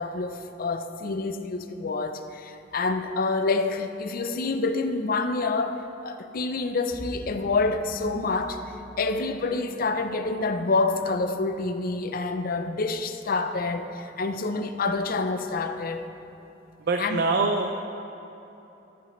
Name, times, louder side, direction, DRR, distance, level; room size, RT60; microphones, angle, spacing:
voice 1, 0.0-8.6 9.0-16.1 17.0-17.2, left 3 dB, 55° left, 8 dB, 0.5 m, -27 dB
sound 1, 6.9-15.9, equal, ahead, 2.1 m, -49 dB
voice 2, 16.8-17.9, right 3 dB, 60° right, 3 dB, 0.5 m, -25 dB
14.0 x 9.9 x 3.1 m, 3.0 s
head